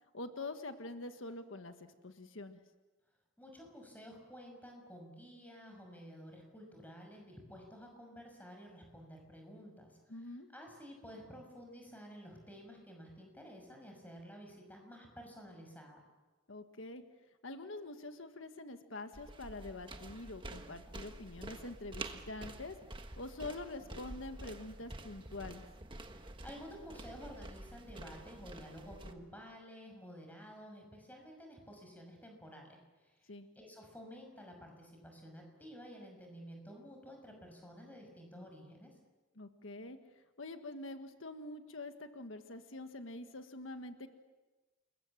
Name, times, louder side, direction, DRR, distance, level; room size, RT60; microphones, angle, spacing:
voice 1, 0.1-2.6 10.1-10.5 16.5-17.0 17.4-22.8 23.2-25.7 33.3-33.5 39.4-40.0 40.4-44.1, left 2 dB, 85° left, 7 dB, 1.6 m, -45 dB
voice 2, 3.4-16.0 26.1-33.3 33.6-39.0, equal, 10° left, 2 dB, 6.1 m, -52 dB
sound 1, 19.1-29.1, right 2 dB, 25° right, 1.5 m, -48 dB
29.0 x 22.0 x 7.4 m, 1.2 s
head